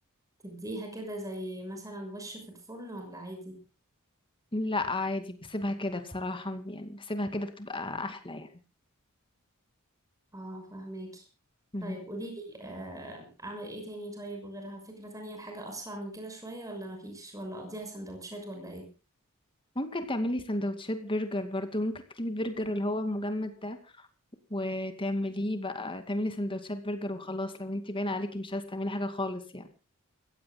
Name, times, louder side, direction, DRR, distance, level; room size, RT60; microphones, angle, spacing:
voice 1, 0.4-3.6 10.3-11.2 11.8-18.9, right 1 dB, 15° right, 3 dB, 6.2 m, -40 dB
voice 2, 4.5-8.5 11.7-12.0 19.8-23.8 24.5-29.7, left 1 dB, 25° left, 8 dB, 2.4 m, -33 dB
28.5 x 16.0 x 2.3 m, 0.32 s
head